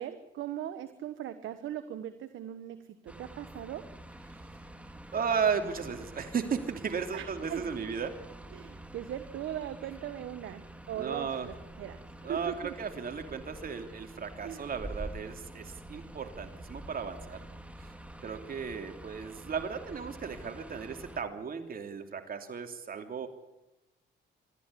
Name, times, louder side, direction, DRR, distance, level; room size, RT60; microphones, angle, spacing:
voice 1, 0.0-3.8 7.1-7.7 8.5-12.0 12.3-12.7 14.4-14.7, right 11 dB, 80° right, 10 dB, 1.2 m, -39 dB
sound 1, 3.1-21.2, right 1 dB, 5° right, 2.4 m, -47 dB
voice 2, 5.1-8.1 10.9-11.5 12.2-17.4 17.8-17.9 18.2-23.3, right 6 dB, 45° right, 6 dB, 3.1 m, -35 dB
27.0 x 11.5 x 10.0 m, 0.95 s
cardioid pair, 90°, 20 cm